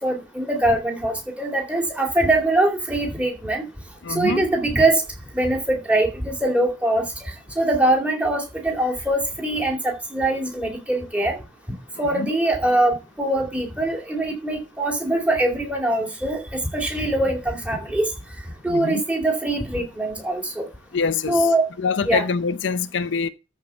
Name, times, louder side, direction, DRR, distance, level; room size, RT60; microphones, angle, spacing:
voice 1, 0.0-3.6 4.1-5.0 5.3-7.0 7.6-11.3 12.0-16.4 16.7-18.1 18.6-20.6 21.3-21.7 22.1-22.2, right 1 dB, 5° right, 2.6 m, -22 dB
voice 2, 4.0-4.5 12.0-12.3 18.7-19.0 20.9-21.5 21.8-23.3, left 5 dB, 70° left, 0.6 m, -25 dB
13.5 x 4.7 x 6.9 m
head